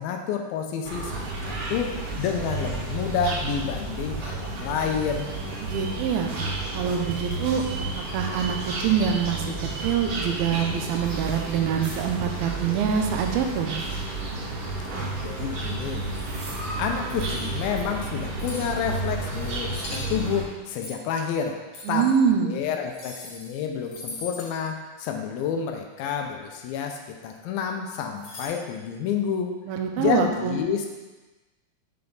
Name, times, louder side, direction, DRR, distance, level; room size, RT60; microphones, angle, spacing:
voice 1, 0.0-1.9 2.2-5.3 15.2-16.0 16.8-21.6 21.9-22.1 22.5-29.5 30.0-30.9, left 7 dB, 80° left, 3 dB, 2.5 m, -29 dB
sound 1, 0.8-20.4, right 2 dB, 70° right, 2.9 m, -31 dB
voice 2, 5.6-6.3 6.7-9.5 9.8-13.7 21.9-22.6 29.7-30.6, right 7 dB, 85° right, 3 dB, 2.5 m, -25 dB
sound 2, 17.1-17.8 18.4-18.7 19.7-20.1 20.8-21.1 21.7-22.1 22.9-23.5 23.8-24.5 28.2-28.5, left 2 dB, 60° left, 3.1 m, -40 dB
6.9 x 5.6 x 3.9 m, 1.2 s
omnidirectional pair, 4.3 m